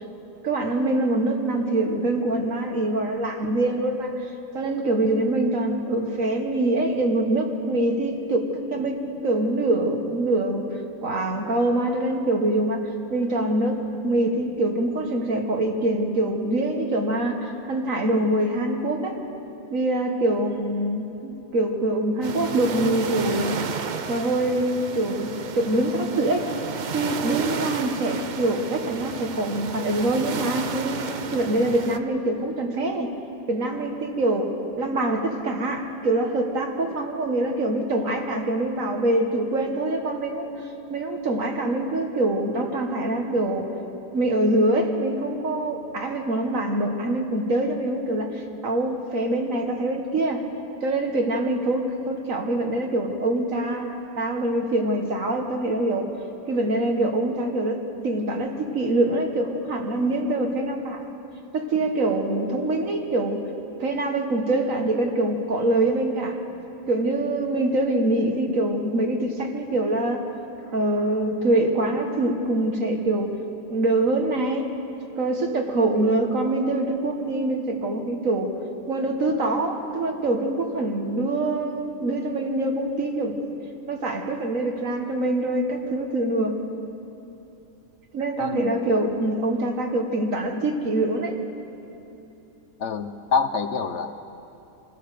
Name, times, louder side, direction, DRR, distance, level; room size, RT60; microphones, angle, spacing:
voice 1, 0.4-10.7 11.0-12.8 13.1-19.2 19.7-23.6 24.1-26.5 26.9-33.2 33.5-40.5 40.9-43.7 44.1-50.5 50.8-56.1 56.5-61.0 61.5-63.5 63.8-66.4 66.9-70.2 70.7-73.3 73.7-74.8 75.2-78.5 78.9-83.4 83.9-86.6 88.1-91.3, right 1 dB, 65° right, 3 dB, 1.9 m, -24 dB
sound 1, 22.2-32.0, right 6 dB, 45° right, 0.6 m, -32 dB
voice 2, 88.4-88.8 92.8-94.1, left 5 dB, 60° left, 8 dB, 1.0 m, -26 dB
25.5 x 15.5 x 6.8 m, 2.9 s
omnidirectional pair, 1.5 m